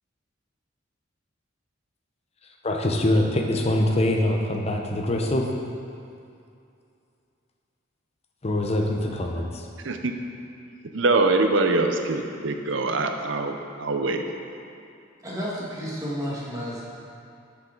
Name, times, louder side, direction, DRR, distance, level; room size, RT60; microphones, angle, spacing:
voice 1, 2.6-5.5 8.4-9.7, left 1 dB, 30° left, 2 dB, 0.7 m, -24 dB
voice 2, 10.9-14.2, right 3 dB, 65° right, 5 dB, 0.6 m, -23 dB
voice 3, 15.2-16.8, equal, 15° right, -6 dB, 1.6 m, -31 dB
9.8 x 5.6 x 3.9 m, 2.5 s
head